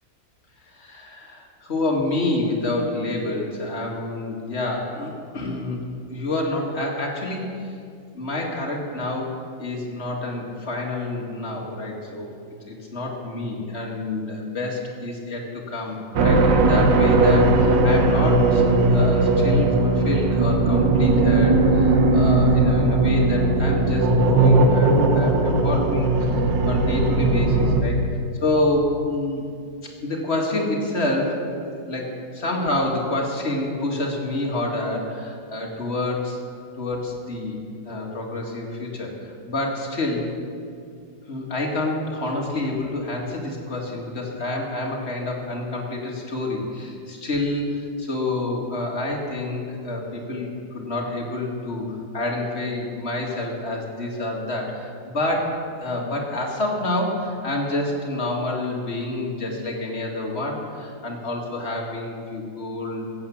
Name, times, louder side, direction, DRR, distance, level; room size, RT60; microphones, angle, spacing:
voice 1, 0.7-5.8 6.1-7.8 8.1-12.4 12.7-18.6 18.9-26.1 26.7-28.0 28.4-29.4 29.8-36.4 36.8-37.6 37.8-40.3 41.3-63.0, left 2 dB, 35° left, -1 dB, 2.2 m, -28 dB
sound 1, 16.2-27.8, right 2 dB, 70° right, 1.7 m, -18 dB
15.0 x 8.7 x 7.1 m, 2.3 s
omnidirectional pair, 2.1 m